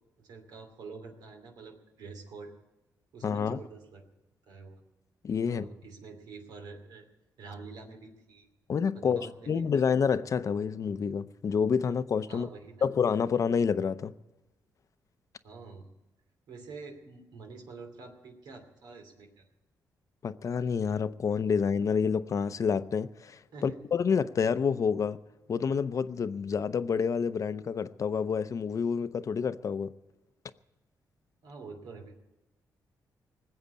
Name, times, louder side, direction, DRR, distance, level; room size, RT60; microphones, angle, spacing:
voice 1, 0.2-2.5 3.1-4.1 4.5-4.8 5.4-7.1 7.4-8.5 8.9-9.8 12.3-12.9 15.4-15.9 16.5-19.5 23.5-23.8 31.4-32.2, right 4 dB, 85° right, 2.7 m, -47 dB
voice 2, 3.2-3.6 5.2-5.7 8.7-12.5 12.8-14.1 20.2-25.2 25.5-29.9, left 6 dB, 50° left, 0.6 m, -28 dB
19.5 x 8.0 x 8.3 m
cardioid pair, 85°, 7 cm